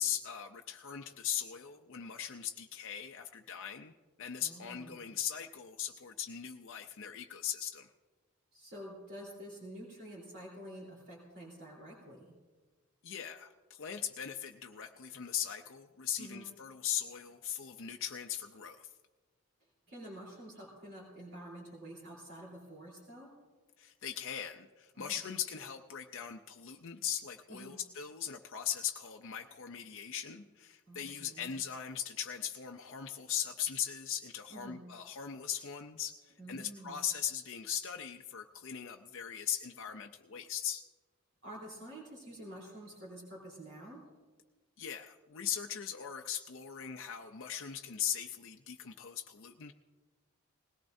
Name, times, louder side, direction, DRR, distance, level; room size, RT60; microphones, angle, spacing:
voice 1, 0.0-3.9 4.2-7.9 13.0-18.9 23.8-40.8 44.8-49.7, left 9 dB, 60° left, 4 dB, 0.5 m, -39 dB
voice 2, 4.4-5.1 8.5-12.3 16.2-16.4 19.6-23.3 24.9-25.2 27.5-27.8 30.9-31.5 34.5-34.8 36.4-37.0 41.4-44.1, right 1 dB, 55° right, -6 dB, 3.4 m, -49 dB
20.0 x 17.5 x 2.6 m, 1.3 s
head